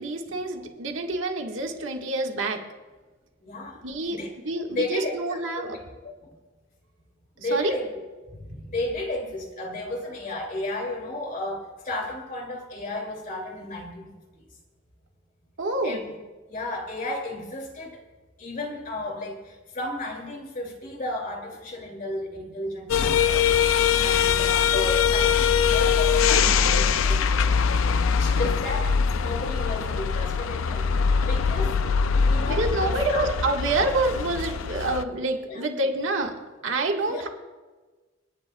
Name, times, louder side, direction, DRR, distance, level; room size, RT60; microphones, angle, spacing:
voice 1, 0.0-2.6 3.8-4.2 4.4-5.8 7.4-7.7 15.6-16.0 23.4-23.5 23.9-24.4 32.5-36.3 36.6-37.3, right 2 dB, 70° right, 2 dB, 1.6 m, -27 dB
voice 2, 3.4-3.8 4.1-4.3 4.7-5.8 6.2-6.3 7.4-7.9 8.3-14.1 15.8-16.1 16.5-18.0 18.4-23.5 24.0-27.7 28.1-30.9 31.3-31.8 32.2-33.3 35.5-35.6 37.1-37.3, left 1 dB, 45° left, 1 dB, 2.6 m, -33 dB
sound 1, 22.9-35.0, left 6 dB, 85° left, 0.5 m, -22 dB
29.5 x 10.0 x 2.3 m, 1.3 s
head